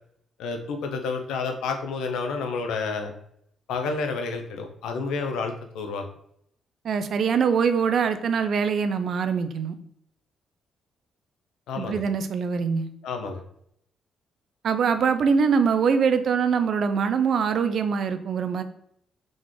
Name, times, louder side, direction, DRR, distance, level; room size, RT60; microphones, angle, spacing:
voice 1, 0.4-3.1 3.7-6.0 11.7-12.0 13.0-13.4, left 4 dB, 80° left, 5 dB, 0.7 m, -30 dB
voice 2, 6.8-9.7 11.8-12.9 14.6-18.6, right 6 dB, 65° right, 10 dB, 0.5 m, -23 dB
3.8 x 3.7 x 3.2 m, 0.71 s
supercardioid pair, 60°, 0 cm